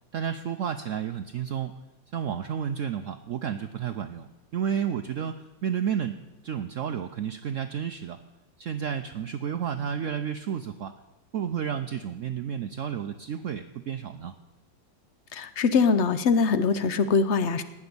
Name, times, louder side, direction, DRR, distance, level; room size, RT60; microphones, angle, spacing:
voice 1, 0.1-1.7 2.1-5.3 5.6-6.2 6.4-8.2 8.6-10.9 11.3-14.3, right 8 dB, 85° right, 8 dB, 0.6 m, -31 dB
voice 2, 15.3-17.6, left 5 dB, 65° left, 11 dB, 0.6 m, -23 dB
18.5 x 6.1 x 9.4 m, 1.0 s
omnidirectional pair, 2.1 m